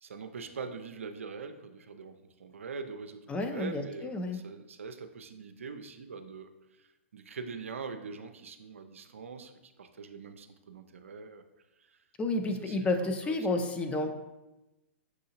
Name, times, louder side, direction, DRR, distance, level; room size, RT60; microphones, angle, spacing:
voice 1, 0.0-6.5 7.1-11.4 12.6-13.4, right 5 dB, 85° right, 7 dB, 0.4 m, -43 dB
voice 2, 3.3-4.4 12.2-14.2, left 2 dB, 15° left, 6 dB, 0.4 m, -31 dB
5.9 x 2.7 x 2.8 m, 1.0 s
hypercardioid pair, 120°, 7 cm